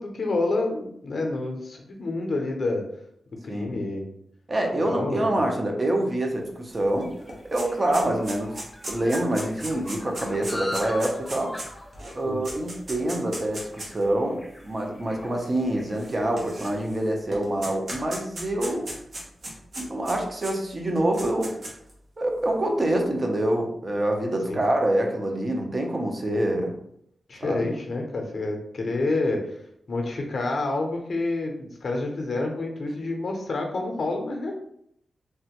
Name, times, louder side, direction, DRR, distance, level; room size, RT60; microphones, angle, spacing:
voice 1, 0.0-2.8 3.4-4.0 4.8-5.3 12.3-12.4 24.5-24.6 27.3-29.5 29.9-34.5, left 2 dB, 60° left, 2 dB, 0.6 m, -28 dB
voice 2, 4.5-7.1 7.5-8.5 8.9-11.6 12.1-18.9 19.8-21.6 22.2-26.8 27.4-27.6, right 1 dB, 35° right, 2 dB, 0.6 m, -26 dB
sound 1, 6.3-16.9, left 1 dB, 15° left, 0.4 m, -42 dB
sound 2, 6.7-6.8 7.1-14.0 14.8-14.9 16.0-17.0 17.3-20.5 21.0-21.9, right 1 dB, 65° right, 1.0 m, -37 dB
3.3 x 2.1 x 2.9 m, 0.73 s
cardioid pair, 80°, 0 cm